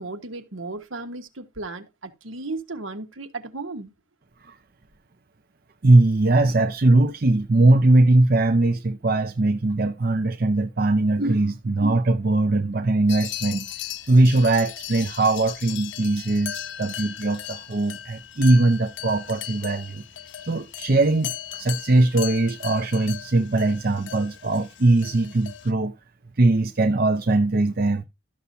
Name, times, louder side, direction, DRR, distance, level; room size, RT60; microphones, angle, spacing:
voice 1, 0.0-3.9, right 3 dB, 80° right, 1.4 m, -35 dB
voice 2, 5.8-13.6 14.1-20.0 20.5-25.9 26.4-28.0, right 2 dB, 45° right, 0.6 m, -20 dB
sound 1, 13.1-25.7, left 12 dB, 60° left, 0.4 m, -37 dB
13.0 x 6.8 x 2.7 m
head